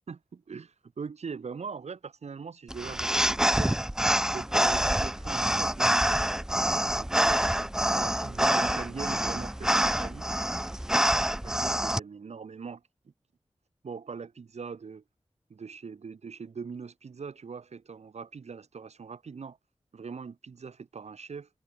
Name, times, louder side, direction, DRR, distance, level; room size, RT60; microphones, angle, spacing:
voice 1, 0.0-3.8 4.3-6.3 6.9-10.3 10.7-12.8 13.8-15.0 15.5-19.6 19.9-21.5, right 5 dB, 90° right, 4.6 m, -41 dB
sound 1, 2.7-12.0, right 1 dB, 5° right, 0.4 m, -26 dB
open air
wide cardioid pair, 75°, 11 cm